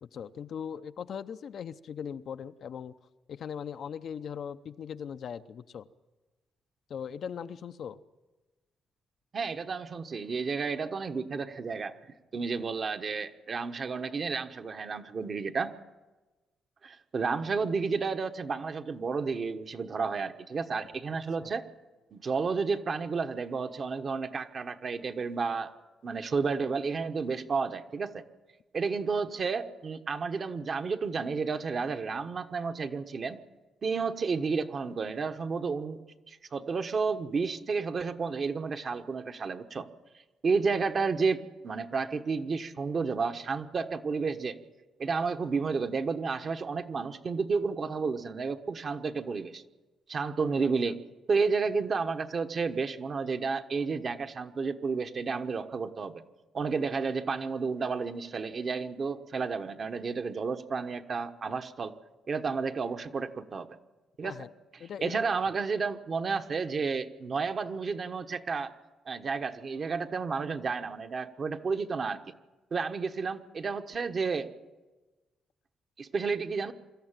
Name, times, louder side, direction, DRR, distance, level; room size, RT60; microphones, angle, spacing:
voice 1, 0.0-2.9 3.3-5.9 6.9-8.0 21.1-21.5 64.2-64.5 64.8-65.2, left 8 dB, 60° left, 11 dB, 0.7 m, -39 dB
voice 2, 9.3-11.9 12.3-15.7 16.8-21.7 22.1-25.7 26.0-28.2 28.7-33.4 33.8-36.0 36.3-39.9 40.4-44.6 45.0-49.6 50.1-51.0 51.3-56.2 56.5-61.9 62.3-63.8 64.2-64.4 65.0-68.7 69.0-72.3 72.7-74.5 76.0-76.7, right 4 dB, 45° right, 8 dB, 1.2 m, -31 dB
24.5 x 13.5 x 9.0 m, 1.2 s
cardioid pair, 115°, 0 cm